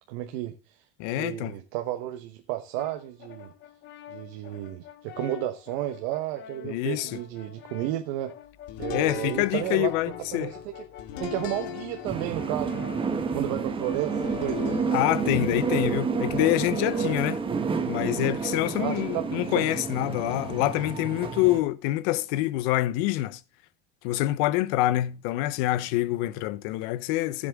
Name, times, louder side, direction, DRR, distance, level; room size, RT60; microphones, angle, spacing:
voice 1, 0.1-0.8 1.1-3.5 4.1-8.3 8.8-9.9 10.3-10.8 11.2-12.9 13.3-14.8 18.8-19.2, right 14 dB, 70° right, 1.2 m, -32 dB
voice 2, 1.0-1.5 6.6-7.2 8.9-10.5 14.9-17.4 17.9-23.4 24.0-27.5, left 16 dB, 65° left, 0.8 m, -26 dB
Brass instrument, 2.8-17.6, left 11 dB, 35° left, 0.8 m, -45 dB
sound 1, 8.7-19.3, left 9 dB, 90° left, 2.1 m, -42 dB
sound 2, 12.0-21.6, right 5 dB, 15° right, 1.1 m, -30 dB
15.0 x 7.7 x 3.5 m
cardioid pair, 155°, 31 cm